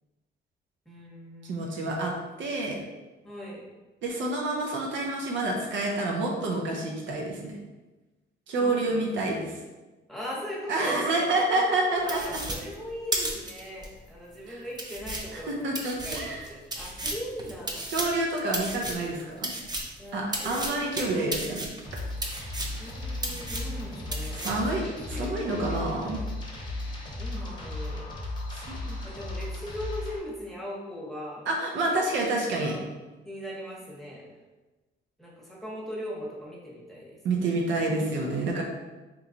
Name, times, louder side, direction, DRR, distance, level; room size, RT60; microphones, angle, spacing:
voice 1, 0.9-1.9 3.2-3.6 8.6-9.0 10.1-11.6 12.0-15.8 16.0-17.9 20.0-21.2 22.8-26.3 27.2-28.1 28.9-31.5 32.5-32.8 33.2-34.2 35.2-37.2, equal, ahead, -5 dB, 1.1 m, -39 dB
voice 2, 1.4-2.1 2.4-2.8 4.0-7.6 8.5-9.6 10.7-12.4 14.5-14.6 15.3-16.4 17.9-19.5 20.1-21.7 24.3-24.8 25.1-26.2 28.5-28.8 31.5-32.8 37.2-38.6, right 2 dB, 70° right, -1 dB, 0.7 m, -28 dB
sound 1, 12.1-13.9 14.3-14.4 14.8-20.0 20.3-22.9 23.2-23.8 24.1-24.7, right 1 dB, 20° right, 0.5 m, -34 dB
sound 2, 21.8-30.2, left 2 dB, 25° left, 0.8 m, -36 dB
3.0 x 2.3 x 3.8 m, 1.2 s
cardioid pair, 90°, 20 cm